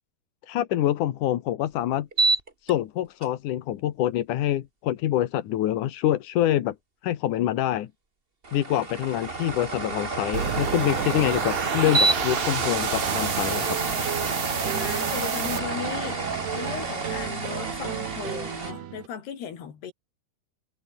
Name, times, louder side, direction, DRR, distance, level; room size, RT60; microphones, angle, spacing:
voice 1, 0.5-2.1 2.6-6.8 7.0-7.9 8.5-13.8, left 12 dB, 65° left, 2.3 m, -26 dB
sound 1, 2.1-2.7 3.2-3.3 8.4-18.7, right 3 dB, 20° right, 1.5 m, -28 dB
sound 2, 10.3-15.6, right 9 dB, 55° right, 3.3 m, -31 dB
sound 3, 13.0-19.1, right 10 dB, 75° right, 4.1 m, -35 dB
voice 2, 14.7-19.9, left 8 dB, 80° left, 5.4 m, -36 dB
omnidirectional pair, 4.7 m